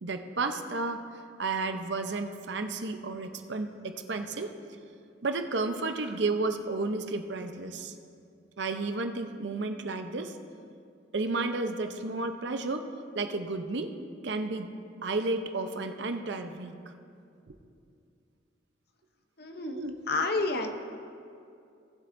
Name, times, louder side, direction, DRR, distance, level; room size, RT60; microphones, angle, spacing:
voice 1, 0.0-1.0 1.4-4.5 5.2-7.9 8.6-10.3 11.1-12.9 13.1-13.9 14.2-14.7 15.0-16.9 19.6-20.0, right 3 dB, 65° right, 7 dB, 0.7 m, -32 dB
voice 2, 19.4-19.8 20.1-20.8, left 3 dB, 55° left, 6 dB, 0.8 m, -29 dB
18.5 x 7.9 x 2.6 m, 2.5 s
head